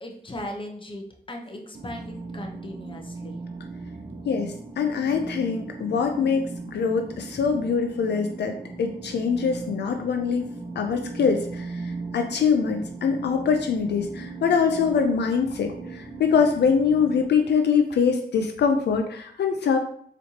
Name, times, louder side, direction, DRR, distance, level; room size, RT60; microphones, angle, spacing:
voice 1, 0.0-3.4 7.3-7.5, left 1 dB, 30° left, 2 dB, 0.8 m, -38 dB
sound 1, 1.7-17.3, right 3 dB, 30° right, 0.7 m, -38 dB
voice 2, 4.2-19.8, left 6 dB, 75° left, 4 dB, 0.4 m, -24 dB
4.2 x 3.1 x 2.8 m, 0.63 s
cardioid pair, 75°, 17 cm